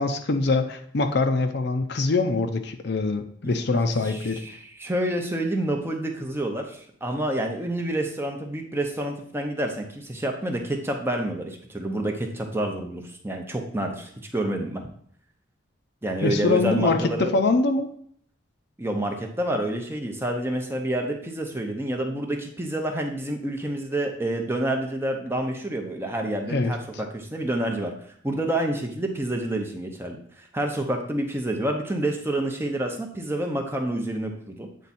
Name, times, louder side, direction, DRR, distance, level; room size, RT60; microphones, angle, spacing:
voice 1, 0.0-4.4 16.2-17.9 26.5-26.7, left 3 dB, 55° left, 6 dB, 0.5 m, -24 dB
voice 2, 4.0-14.8 16.0-17.4 18.8-27.9 28.2-34.7, right 1 dB, 10° right, 3 dB, 0.7 m, -28 dB
8.3 x 3.5 x 4.2 m, 0.62 s
head